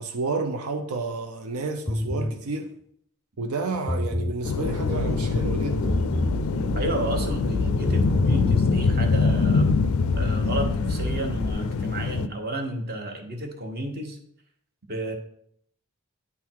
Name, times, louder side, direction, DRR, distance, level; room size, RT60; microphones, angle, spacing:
voice 1, 0.0-2.7 3.4-5.9, right 3 dB, 90° right, 0.6 m, -30 dB
sound 1, 1.9-2.4 3.7-4.4 5.9-6.4 7.7-8.4, left 1 dB, ahead, 0.6 m, -27 dB
sound 2, 4.4-12.3, left 4 dB, 75° left, 0.4 m, -24 dB
sound 3, 4.6-11.5, equal, 75° right, 0.9 m, -31 dB
voice 2, 6.7-9.8 10.2-14.2 14.9-15.1, right 1 dB, 45° right, 1.2 m, -31 dB
9.9 x 3.7 x 4.6 m
head